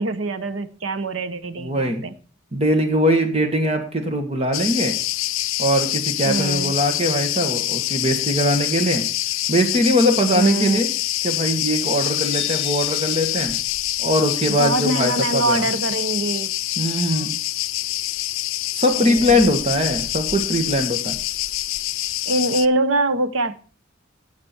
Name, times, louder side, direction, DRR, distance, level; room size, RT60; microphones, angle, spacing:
voice 1, 0.0-2.2 6.2-6.8 10.3-10.8 14.6-16.5 18.9-19.4 22.3-23.5, right 2 dB, 75° right, 13 dB, 0.9 m, -23 dB
voice 2, 1.6-2.0 2.5-5.0 5.6-9.0 9.5-10.9 11.2-13.6 14.0-15.7 16.8-17.3 18.7-21.2, equal, 30° right, 5 dB, 1.7 m, -21 dB
Cricket, 4.5-22.7, left 15 dB, 75° left, 0.5 m, -25 dB
sound 1, 12.2-14.0, left 5 dB, 30° left, 7.4 m, -38 dB
16.5 x 6.0 x 4.5 m, 0.40 s
head